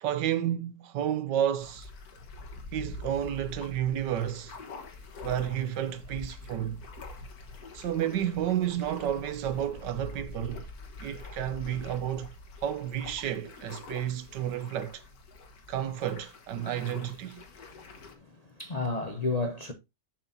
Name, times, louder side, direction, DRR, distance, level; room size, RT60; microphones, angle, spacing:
voice 1, 0.0-1.9 2.7-4.6 5.2-6.8 7.7-10.7 11.0-12.3 12.6-15.0 15.7-17.4, right 10 dB, 85° right, 1.4 m, -31 dB
sound 1, 1.6-18.1, left 3 dB, 60° left, 1.8 m, -45 dB
voice 2, 17.6-18.2 18.6-19.7, left 3 dB, 35° left, 0.7 m, -32 dB
7.5 x 6.2 x 2.7 m
omnidirectional pair, 1.8 m